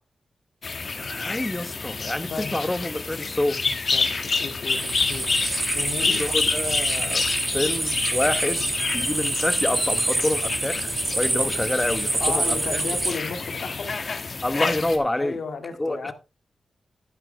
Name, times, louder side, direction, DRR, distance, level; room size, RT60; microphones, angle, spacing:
sound 1, 0.6-15.0, left 4 dB, 45° left, 1.7 m, -28 dB
voice 1, 1.0-3.6 6.0-7.2 7.5-12.8 14.4-15.4 15.8-16.1, left 1 dB, 15° left, 1.0 m, -27 dB
voice 2, 3.9-5.4 5.6-6.2 12.2-13.9 15.2-16.1, left 4 dB, 75° left, 2.0 m, -34 dB
sound 2, 4.7-13.1, right 2 dB, 30° right, 3.1 m, -27 dB
11.5 x 10.0 x 3.3 m
wide cardioid pair, 125°, 0 cm